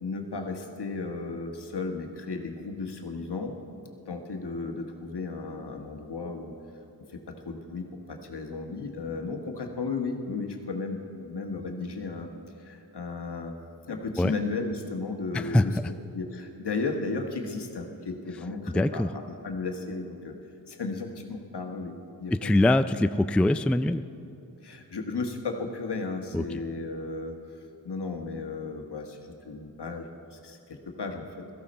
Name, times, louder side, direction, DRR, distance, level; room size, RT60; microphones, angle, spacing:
voice 1, 0.0-3.5 4.1-6.5 7.1-12.3 12.6-13.6 13.9-20.4 20.7-22.7 24.6-27.3 27.8-31.4, left 3 dB, 70° left, 3 dB, 1.5 m, -34 dB
voice 2, 15.3-15.6 18.7-19.1 22.4-24.0 26.3-26.6, left 1 dB, 5° left, 11 dB, 0.3 m, -23 dB
17.0 x 14.0 x 4.3 m, 2.9 s
cardioid pair, 50°, 41 cm